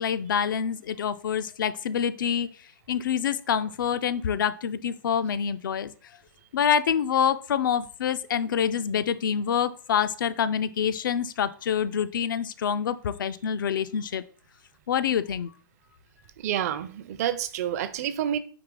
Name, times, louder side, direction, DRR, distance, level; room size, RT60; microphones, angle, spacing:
voice 1, 0.0-2.5 2.9-5.9 6.5-14.2 14.9-15.5, left 8 dB, 70° left, 0.4 m, -26 dB
voice 2, 16.4-18.4, right 10 dB, 45° right, 0.5 m, -28 dB
4.8 x 2.8 x 3.7 m
hypercardioid pair, 130°, 11 cm